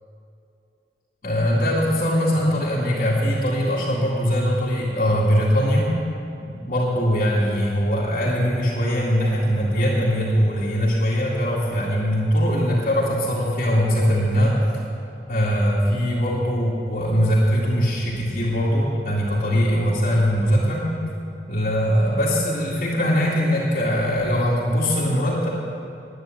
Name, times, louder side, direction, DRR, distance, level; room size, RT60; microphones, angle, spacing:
voice 1, 1.2-5.9 6.4-14.6 15.3-20.9 21.5-25.5, equal, 50° left, -9 dB, 2.3 m, -21 dB
10.5 x 9.5 x 9.0 m, 2.7 s
head